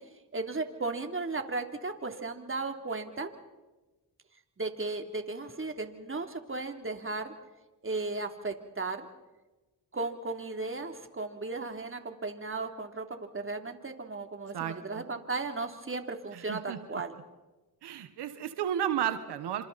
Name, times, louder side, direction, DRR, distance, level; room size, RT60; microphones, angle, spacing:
voice 1, 0.3-3.3 4.6-7.3 7.8-9.1 9.9-13.0 13.3-17.2, right 3 dB, 30° right, 5 dB, 3.2 m, -35 dB
voice 2, 14.5-15.0 16.3-17.0 17.8-19.6, right 10 dB, 90° right, 9 dB, 1.4 m, -33 dB
28.0 x 26.5 x 4.2 m, 1.1 s
cardioid pair, 60°, 39 cm